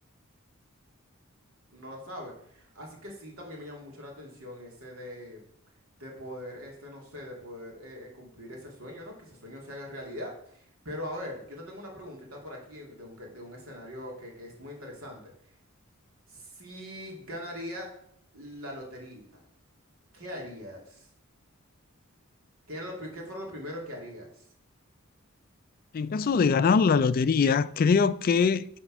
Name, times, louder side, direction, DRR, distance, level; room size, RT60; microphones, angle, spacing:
voice 1, 1.7-5.4 6.0-15.3 16.3-17.9 18.3-19.4 20.1-21.1 22.7-24.5, left 1 dB, 80° right, 2.7 m, -41 dB
voice 2, 25.9-28.8, left 5 dB, 45° left, 0.3 m, -23 dB
10.0 x 4.4 x 6.1 m
head